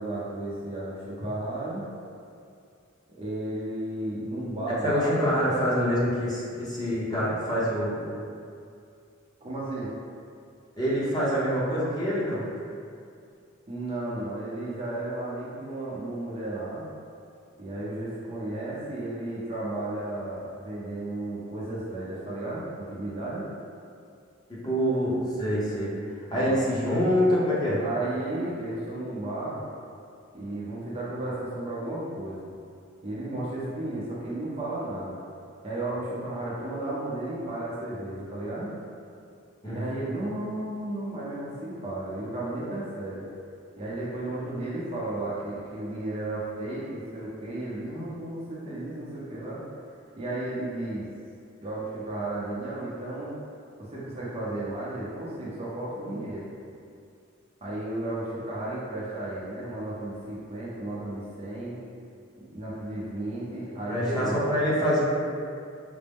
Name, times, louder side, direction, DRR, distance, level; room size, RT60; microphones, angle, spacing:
voice 1, 0.0-1.9 3.2-5.1 9.4-9.9 13.7-16.9 17.6-23.4 26.3-26.6 27.8-29.6 30.3-32.5 33.0-35.2 35.6-38.7 39.7-43.3 43.8-49.6 50.2-51.0 51.6-53.3 53.8-56.4 57.6-61.8 62.5-64.4, right 1 dB, 30° right, -7 dB, 0.7 m, -33 dB
voice 2, 4.8-8.1 10.8-12.4 24.5-25.9 26.3-27.8 39.6-39.9 63.9-65.0, equal, 20° left, -8 dB, 0.8 m, -25 dB
5.1 x 2.1 x 3.5 m, 2.4 s
head